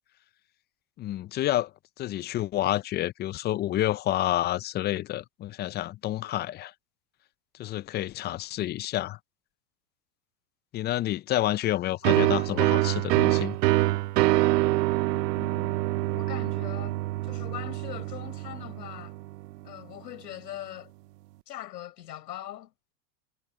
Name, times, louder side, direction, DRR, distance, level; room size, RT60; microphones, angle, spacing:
voice 1, 1.0-1.7 2.0-6.7 7.6-9.2 10.7-13.6, left 14 dB, 20° left, 0.4 m, -29 dB
sound 1, 12.0-19.5, right 18 dB, 75° right, 0.6 m, -25 dB
voice 2, 15.4-19.2 19.6-20.9 21.5-22.7, left 12 dB, 80° left, 5.2 m, -41 dB
hypercardioid pair, 105°, 49 cm